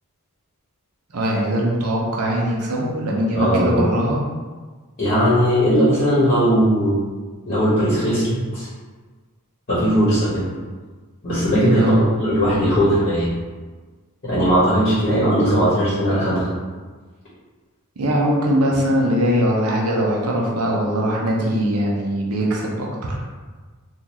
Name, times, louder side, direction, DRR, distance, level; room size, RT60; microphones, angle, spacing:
voice 1, 1.1-4.2 11.7-12.1 18.0-23.2, equal, 75° right, -2 dB, 0.7 m, -21 dB
voice 2, 3.3-3.8 5.0-7.0 7.5-8.7 9.7-10.5 11.2-13.3 14.2-16.5, equal, 40° left, -10 dB, 1.1 m, -18 dB
3.8 x 2.5 x 2.9 m, 1.4 s
head